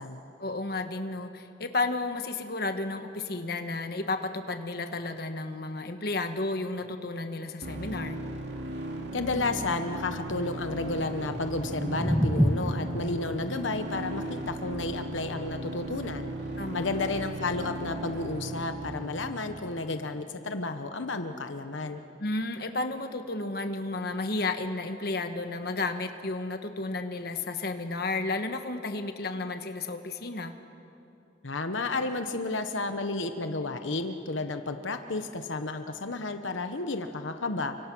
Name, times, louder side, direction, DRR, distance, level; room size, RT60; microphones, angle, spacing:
voice 1, 0.4-8.2 16.6-16.9 22.2-30.5, left 2 dB, 55° left, 7 dB, 1.4 m, -32 dB
sound 1, 7.6-19.6, right 1 dB, 65° right, 2.6 m, -37 dB
voice 2, 9.1-16.3 16.7-22.0 31.4-37.8, left 3 dB, 85° left, 7 dB, 1.1 m, -32 dB
sound 2, 11.2-17.3, equal, 5° right, 1.3 m, -31 dB
29.5 x 25.0 x 6.2 m, 2.8 s
head